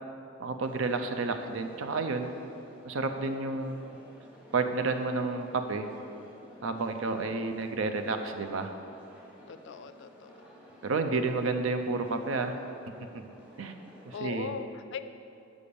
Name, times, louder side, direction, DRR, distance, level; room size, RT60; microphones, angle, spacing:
voice 1, 0.4-2.3 2.8-3.8 4.5-5.9 6.6-8.7 10.8-12.5 13.0-13.2 13.6-13.7 14.0-14.5, right 3 dB, 65° right, 7 dB, 0.5 m, -30 dB
sound 1, 0.6-14.2, equal, 5° right, 1.2 m, -54 dB
voice 2, 9.5-10.5 14.1-15.0, left 6 dB, 60° left, 11 dB, 0.4 m, -40 dB
6.9 x 5.1 x 6.8 m, 2.7 s
head